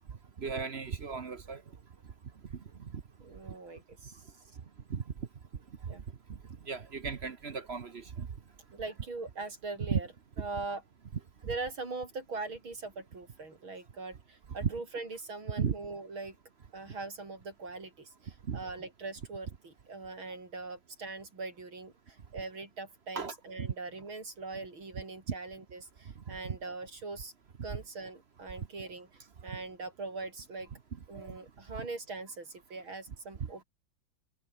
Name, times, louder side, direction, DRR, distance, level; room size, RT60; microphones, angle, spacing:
voice 1, 0.4-1.6 2.9-3.0 4.9-5.0 6.7-8.3 9.9-10.0 14.6-14.7 15.6-15.7 18.5-18.6 23.1-23.7 26.4-26.6 31.1-31.3, right 6 dB, 40° right, 1.0 m, -34 dB
voice 2, 3.2-4.2 5.9-6.0 8.7-10.1 10.4-10.8 11.4-16.4 16.7-27.3 27.6-29.1 29.4-30.7 31.1-33.7, right 3 dB, 90° right, 6.3 m, -41 dB
omnidirectional pair, 2.2 m